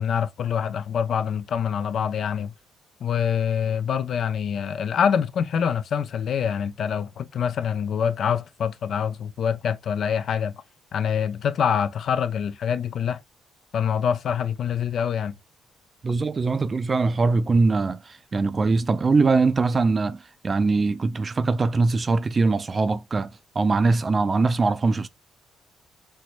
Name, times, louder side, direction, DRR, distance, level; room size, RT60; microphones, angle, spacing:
voice 1, 0.0-2.5 3.0-10.5 10.9-13.2 13.7-15.3, left 7 dB, 65° left, 0.3 m, -25 dB
voice 2, 16.0-18.0 18.3-23.3 23.6-25.1, right 3 dB, 35° right, 0.3 m, -22 dB
4.4 x 2.1 x 2.4 m
cardioid pair, 90°, 0 cm